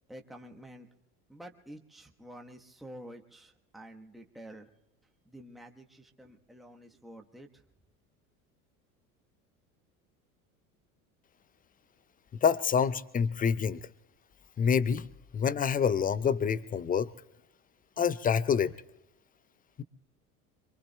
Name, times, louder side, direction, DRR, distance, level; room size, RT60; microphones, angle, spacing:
voice 1, 0.1-0.9 1.3-4.7 5.2-7.6, right 1 dB, ahead, 1.2 m, -49 dB
voice 2, 12.4-13.8 14.6-15.1 15.3-17.1 18.0-18.7 19.8-19.9, left 7 dB, 20° left, 0.5 m, -27 dB
26.0 x 23.5 x 2.3 m
hypercardioid pair, 70°, 45 cm